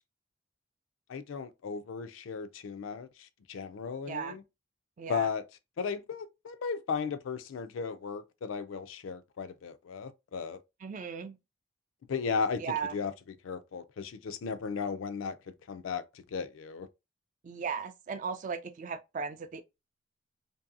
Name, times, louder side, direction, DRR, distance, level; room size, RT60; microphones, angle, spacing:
voice 1, 1.1-4.4 5.1-5.4 5.8-10.6 12.1-12.6 12.9-13.1 13.4-15.4 15.7-16.9, left 5 dB, 80° left, 0.4 m, -35 dB
voice 2, 4.1-4.4 5.0-5.3 10.8-11.4 12.6-13.0 17.4-19.6, right 6 dB, 40° right, 0.3 m, -36 dB
2.6 x 2.6 x 2.5 m
head